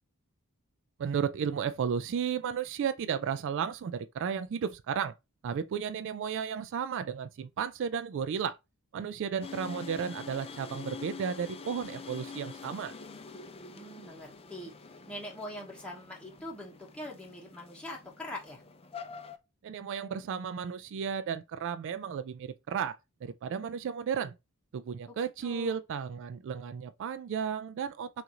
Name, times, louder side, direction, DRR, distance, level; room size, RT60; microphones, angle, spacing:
voice 1, 1.0-5.1 5.4-8.6 8.9-12.9 19.6-23.0 23.2-24.3 24.7-28.2, right 7 dB, 60° right, 0.3 m, -33 dB
sound 1, 9.4-19.4, left 4 dB, 25° left, 0.4 m, -46 dB
voice 2, 13.7-18.6 25.1-25.8, left 1 dB, 5° left, 1.0 m, -43 dB
5.7 x 2.5 x 2.8 m
head